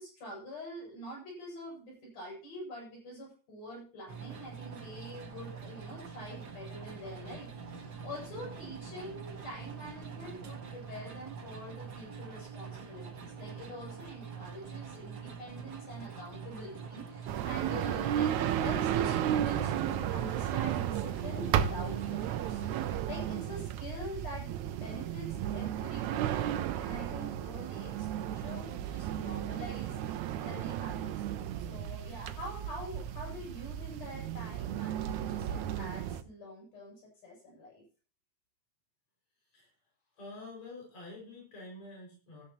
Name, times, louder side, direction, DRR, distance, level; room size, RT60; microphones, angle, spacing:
voice 1, 0.0-24.5 24.8-31.1 31.6-37.8, equal, 85° left, -2 dB, 9.3 m, -45 dB
sound 1, 4.1-22.9, right 6 dB, 40° right, 1.7 m, -45 dB
sound 2, 17.3-36.2, right 11 dB, 75° right, 2.0 m, -34 dB
voice 2, 40.1-42.4, left 2 dB, 60° left, -2 dB, 7.4 m, -47 dB
17.0 x 13.5 x 3.0 m, 0.37 s
omnidirectional pair, 3.5 m